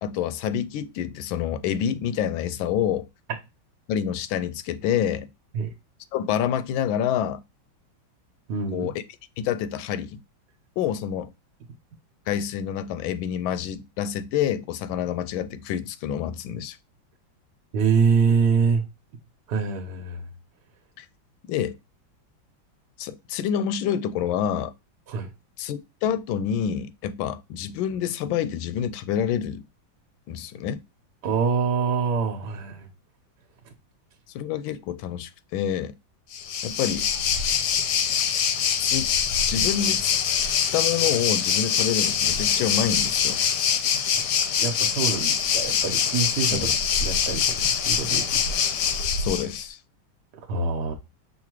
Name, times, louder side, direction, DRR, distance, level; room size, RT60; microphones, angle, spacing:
voice 1, 0.0-3.1 3.9-5.3 6.1-7.4 8.7-9.0 9.4-10.2 10.8-11.3 12.3-16.8 21.0-21.1 21.5-21.8 23.0-24.7 25.6-29.6 30.3-30.8 34.3-35.9 36.6-37.0 38.8-39.1 39.4-40.1 40.7-43.4 46.5-46.7 49.2-49.8, left 9 dB, 85° left, 1.4 m, -27 dB
voice 2, 8.5-8.9 17.7-18.8 19.5-20.2 25.1-25.3 31.2-32.9 44.6-46.7 47.0-48.4 50.5-50.9, right 5 dB, 60° right, 1.4 m, -25 dB
Waves surf, 36.3-49.6, left 8 dB, 70° left, 1.1 m, -24 dB
6.5 x 2.8 x 2.9 m
omnidirectional pair, 2.1 m